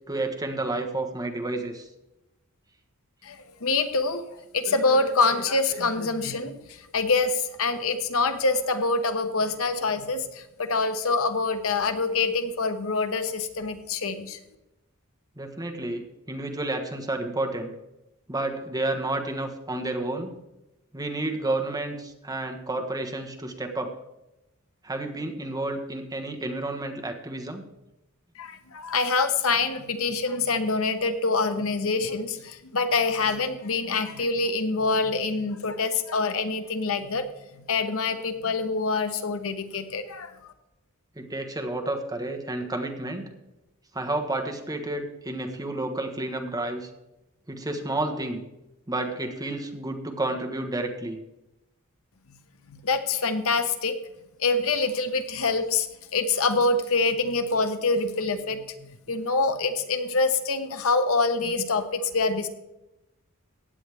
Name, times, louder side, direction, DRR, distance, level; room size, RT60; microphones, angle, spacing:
voice 1, 0.1-1.9 15.4-17.7 18.3-20.3 20.9-23.9 24.8-27.6 41.2-43.3 43.9-46.9 47.5-48.4 48.9-51.2, right 2 dB, 15° right, 4 dB, 1.3 m, -30 dB
voice 2, 3.2-4.2 4.5-14.4 28.4-37.3 37.5-40.3 52.7-54.0 54.4-55.9 56.1-62.5, left 3 dB, 65° left, 9 dB, 1.0 m, -25 dB
16.0 x 9.2 x 3.5 m, 0.93 s
head